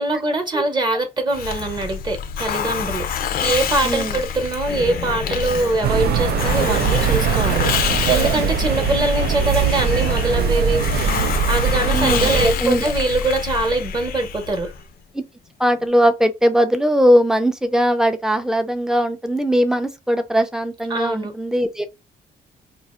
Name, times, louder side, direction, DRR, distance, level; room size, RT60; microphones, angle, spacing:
voice 1, 0.0-10.8 11.5-14.7 20.9-21.3, right 2 dB, 25° right, 0.8 m, -23 dB
Hiss, 1.3-14.8, left 8 dB, 65° left, 0.5 m, -27 dB
voice 2, 3.8-4.2 11.9-12.8 15.1-15.2 15.6-21.9, equal, 5° right, 0.4 m, -19 dB
sound 1, 4.6-14.8 15.7-15.9, left 6 dB, 90° left, 0.8 m, -34 dB
sound 2, 5.8-12.5, right 8 dB, 80° right, 0.4 m, -21 dB
2.6 x 2.4 x 4.2 m
cardioid pair, 140°, 16 cm